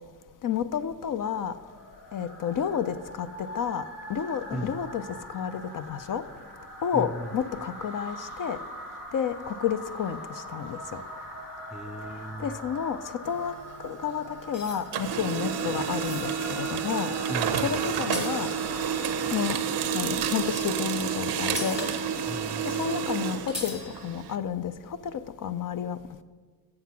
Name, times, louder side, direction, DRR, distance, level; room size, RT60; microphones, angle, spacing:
voice 1, 0.4-1.5 2.1-3.3 3.5-3.8 4.1-5.0 5.3-6.2 6.8-8.6 9.1-10.2 10.5-10.8 12.4-13.5 13.8-17.1 17.6-18.5 19.3-19.6 19.9-21.8 22.7-24.7 25.1-26.0, left 8 dB, 55° left, 12 dB, 0.6 m, -30 dB
sound 1, 1.5-20.3, equal, 85° left, 3.0 m, -42 dB
voice 2, 6.9-7.3 11.7-12.6 17.3-17.7 22.3-23.0, right 1 dB, ahead, 11 dB, 0.3 m, -36 dB
sound 2, 12.8-14.1 14.5-19.0 19.6-20.8 21.0-21.1 21.4-22.4 22.6-22.7 22.9-23.0 23.5-24.1, left 2 dB, 40° left, 2.5 m, -41 dB
Printer, 13.2-14.5 14.8-24.4, right 7 dB, 90° right, 0.8 m, -30 dB
7.8 x 7.5 x 5.7 m, 1.4 s
cardioid pair, 85°, 38 cm